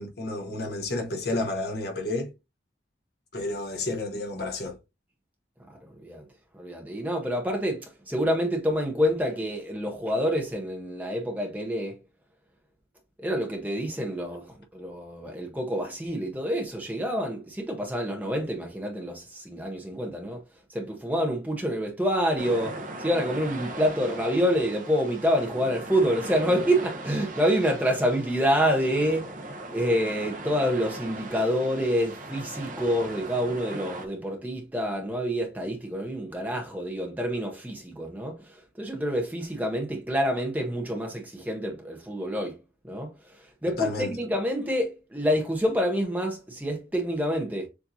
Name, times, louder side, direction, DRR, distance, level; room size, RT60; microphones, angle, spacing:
voice 1, 0.0-2.3 3.3-4.8 43.8-44.2, left 2 dB, 55° left, 1.1 m, -31 dB
voice 2, 6.5-12.0 13.2-20.4 20.7-29.3 29.7-38.4 38.8-42.5 42.8-43.1 43.6-47.7, equal, 10° right, 0.8 m, -27 dB
sound 1, 22.4-34.1, right 2 dB, 45° right, 0.8 m, -39 dB
7.0 x 2.7 x 2.7 m
head